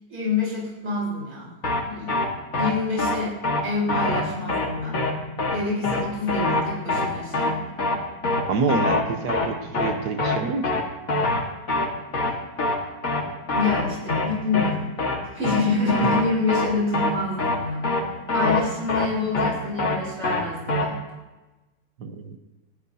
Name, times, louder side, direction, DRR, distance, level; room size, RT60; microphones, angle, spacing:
voice 1, 0.1-1.5 1.8-2.1 2.6-3.4 3.6-5.0 5.5-7.7 13.5-14.9 15.3-17.9 18.3-21.0, left 3 dB, 50° right, -6 dB, 4.6 m, -27 dB
sound 1, 1.6-1.8 2.1-2.3 2.5-2.7 3.0-3.2 3.4-3.6 3.9-4.2 4.5-4.7 4.9-5.1 5.4-5.6 5.8-6.0 6.3-6.6 6.9-7.1 7.3-7.5 7.8-8.0 8.2-8.4 8.7-9.0 9.3-9.5 9.7-9.9 10.2-10.4 10.6-10.8 11.1-11.4 11.7-11.9 12.1-12.3 12.6-12.8 13.0-13.2 13.5-13.8 14.1-14.3 14.5-14.7 15.0-15.2 15.4-15.6 15.9-16.2 16.5-16.7 16.9-17.1 17.4-17.6 17.8-18.0 18.3-18.6 18.9-19.1 19.3-19.5 19.8-20.0 20.2-20.4 20.7-20.8, left 2 dB, 55° left, 2.2 m, -23 dB
voice 2, 8.5-10.8 22.0-22.4, right 4 dB, 80° right, 6 dB, 1.6 m, -27 dB
29.0 x 10.5 x 2.8 m, 1.1 s
omnidirectional pair, 1.7 m